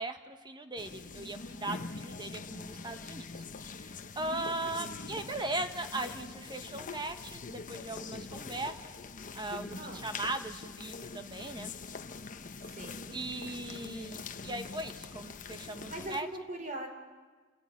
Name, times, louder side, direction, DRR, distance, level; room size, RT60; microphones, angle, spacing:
voice 1, 0.0-3.2 3.6-8.7 9.3-11.7 13.1-16.3, right 2 dB, 20° right, 7 dB, 1.3 m, -38 dB
sound 1, 0.8-16.2, left 4 dB, 40° left, 0.9 m, -44 dB
voice 2, 9.7-10.1 12.6-13.2 15.9-16.9, right 1 dB, 40° right, 5 dB, 3.5 m, -41 dB
29.0 x 13.0 x 9.7 m, 1.4 s
head